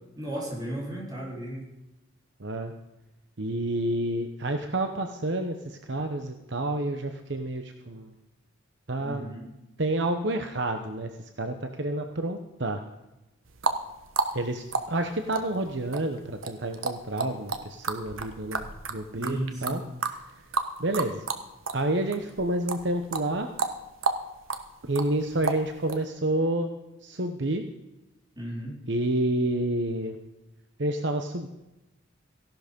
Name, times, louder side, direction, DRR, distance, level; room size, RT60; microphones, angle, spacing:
voice 1, 0.2-1.7 9.0-9.5 19.2-19.8 28.4-28.7, equal, 20° right, -4 dB, 4.2 m, -35 dB
voice 2, 2.4-2.7 3.4-8.1 8.9-9.3 9.8-11.1 11.4-12.8 14.3-19.8 20.8-21.2 21.7-23.5 24.8-26.7 27.0-27.6 28.9-30.2 30.8-31.5, right 1 dB, 60° right, 6 dB, 1.0 m, -29 dB
sound 1, 13.5-21.9 22.1-26.0, right 4 dB, 80° right, 1.3 m, -31 dB
16.0 x 11.5 x 5.3 m, 0.98 s
head